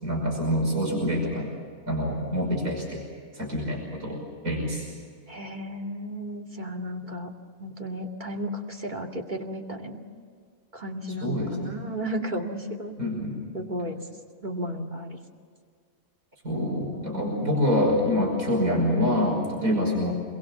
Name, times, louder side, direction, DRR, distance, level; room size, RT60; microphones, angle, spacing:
voice 1, 0.0-1.5 1.9-3.0 3.4-4.8 11.2-11.6 13.0-13.4 16.4-20.1, left 1 dB, 85° right, -1 dB, 6.1 m, -26 dB
voice 2, 5.3-7.3 7.6-10.0 10.7-13.3 13.5-14.0 14.4-15.2 16.5-17.7 19.6-19.9, right 1 dB, 35° right, 1 dB, 2.5 m, -34 dB
28.0 x 22.0 x 7.2 m, 2.2 s
omnidirectional pair, 1.4 m